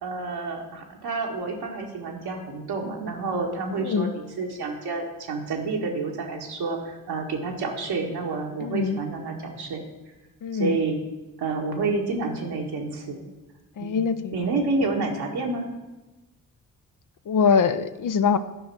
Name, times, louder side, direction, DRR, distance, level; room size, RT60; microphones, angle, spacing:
voice 1, 0.0-9.8 10.5-11.0 11.4-13.2 13.8-14.0 14.3-15.7, right 3 dB, 75° right, 1 dB, 1.8 m, -29 dB
voice 2, 3.8-4.1 8.6-9.0 10.4-10.8 13.8-14.4 17.3-18.4, left 6 dB, 55° left, 11 dB, 0.7 m, -23 dB
11.0 x 5.1 x 6.1 m, 1.1 s
supercardioid pair, 45°, 39 cm